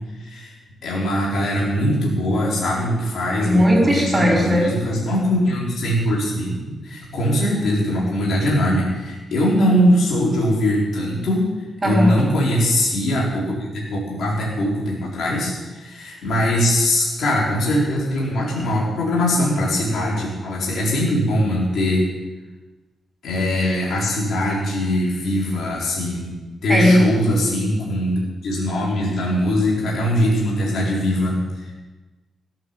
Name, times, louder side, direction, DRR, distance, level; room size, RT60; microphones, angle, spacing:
voice 1, 0.2-0.6 0.8-11.5 11.7-22.0 23.2-26.3 26.6-31.7, equal, 65° left, -4 dB, 4.3 m, -21 dB
voice 2, 3.4-4.7 11.8-12.1 26.7-27.0, equal, 15° right, -2 dB, 4.6 m, -17 dB
16.5 x 8.9 x 7.3 m, 1.2 s
wide cardioid pair, 170°, 0 cm